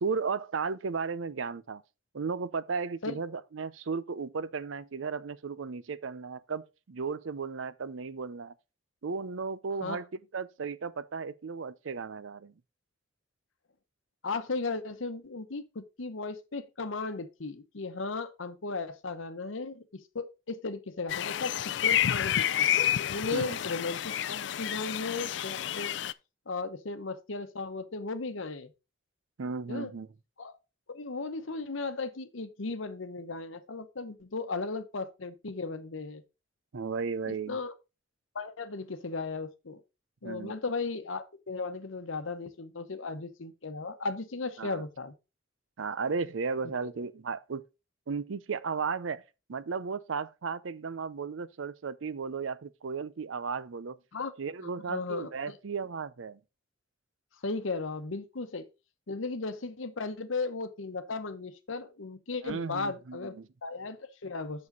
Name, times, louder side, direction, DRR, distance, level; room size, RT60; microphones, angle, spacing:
voice 1, 0.0-1.8 2.1-8.5 9.0-10.1 10.3-12.5 23.3-23.6 29.4-30.1 36.7-37.6 40.2-40.5 44.6-44.8 45.8-47.6 48.1-49.2 49.5-54.0 54.4-56.4 62.4-63.5, right 5 dB, 90° right, 0.6 m, -35 dB
voice 2, 14.2-22.7 23.1-25.9 26.5-28.7 29.7-29.9 30.4-30.5 30.9-36.2 37.3-37.7 38.3-39.8 40.2-45.1 54.1-54.3 54.6-55.6 57.4-58.7 59.1-63.3 63.6-64.7, left 3 dB, 90° left, 0.9 m, -36 dB
sound 1, 21.1-26.1, left 10 dB, 65° left, 0.4 m, -29 dB
7.4 x 6.4 x 3.9 m
head